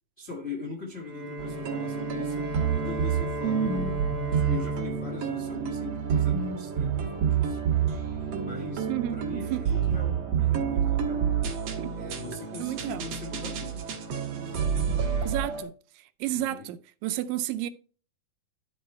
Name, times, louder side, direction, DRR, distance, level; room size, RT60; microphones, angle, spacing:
voice 1, 0.2-4.0 4.3-7.6 8.4-11.3 11.9-13.8 14.4-15.4 16.2-16.7, left 4 dB, 90° left, 0.5 m, -41 dB
Bowed string instrument, 1.0-6.4, equal, 35° right, 0.6 m, -36 dB
sound 1, 1.4-15.6, right 8 dB, 60° right, 2.1 m, -28 dB
voice 2, 8.9-9.6 11.8-11.9 12.6-13.0 15.2-15.7 16.2-17.7, right 14 dB, 85° right, 2.3 m, -31 dB
11.5 x 4.4 x 4.2 m
omnidirectional pair, 4.0 m